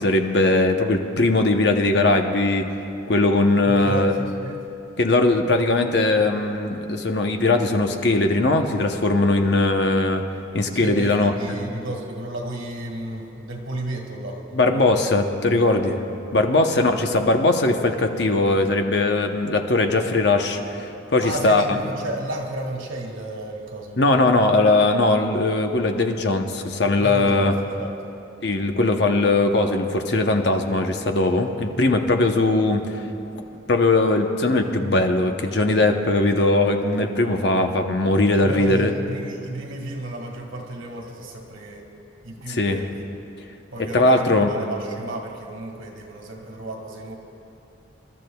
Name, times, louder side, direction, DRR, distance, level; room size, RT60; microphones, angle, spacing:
voice 1, 0.0-2.7 3.1-4.1 5.0-10.2 10.5-11.3 14.5-16.0 16.3-21.8 24.0-27.5 28.4-33.0 33.7-38.9 42.5-42.8 43.9-44.5, left 2 dB, 60° left, 4 dB, 0.9 m, -20 dB
voice 2, 3.7-4.7 10.7-15.1 21.2-24.5 27.0-28.1 38.4-41.9 42.2-43.1 43.7-47.1, right 1 dB, 90° right, 1 dB, 1.9 m, -33 dB
27.5 x 12.5 x 2.3 m, 2.8 s
head